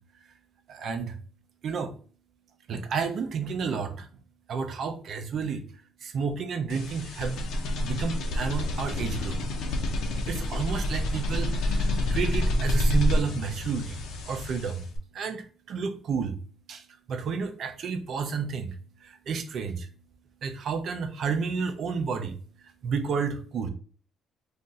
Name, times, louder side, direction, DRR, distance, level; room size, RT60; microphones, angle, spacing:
voice 1, 0.7-1.2 1.6-1.9 2.7-4.1 4.5-5.6 6.0-7.5 7.8-9.4 10.3-14.8 15.1-16.4 16.7-16.8 17.1-18.7 19.0-19.9 20.4-22.3 22.8-23.7, right 5 dB, 55° right, 8 dB, 0.5 m, -31 dB
sound 1, 6.7-15.0, left 1 dB, 75° left, 0.6 m, -28 dB
2.6 x 2.5 x 3.9 m, 0.41 s
cardioid pair, 130°, 0 cm